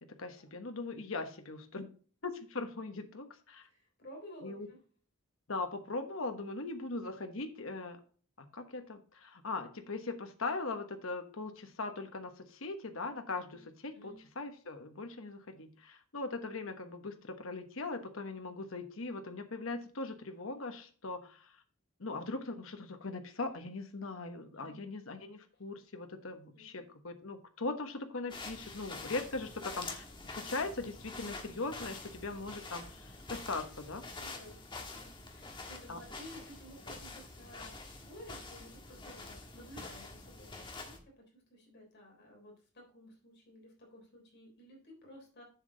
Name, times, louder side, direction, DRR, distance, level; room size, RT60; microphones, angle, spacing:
voice 1, 0.0-1.9 2.2-3.7 4.4-4.7 5.5-8.0 8.4-21.5 22.0-34.0 35.9-36.0, left 3 dB, 65° left, 7 dB, 1.2 m, -40 dB
voice 2, 3.6-4.8 13.5-13.6 13.9-14.2 24.5-24.9 26.5-26.9 34.1-45.4, equal, 50° left, 0 dB, 3.5 m, -54 dB
sound 1, 28.3-41.0, left 3 dB, 25° left, 1.5 m, -46 dB
7.4 x 7.1 x 3.9 m, 0.41 s
head